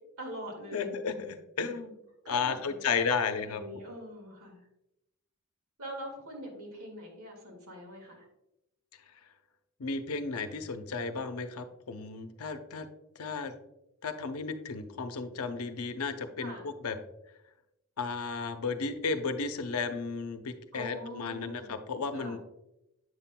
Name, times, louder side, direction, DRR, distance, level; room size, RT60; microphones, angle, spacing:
voice 1, 0.2-0.9 2.2-4.6 5.8-8.3 16.4-16.7 20.7-21.8 22.1-22.4, equal, 90° right, 1 dB, 2.0 m, -43 dB
voice 2, 0.7-2.0 2.3-3.6 9.8-12.9 13.2-13.5 14.0-17.0 18.0-22.4, left 5 dB, 90° left, 8 dB, 0.6 m, -33 dB
7.7 x 5.8 x 2.2 m, 0.87 s
head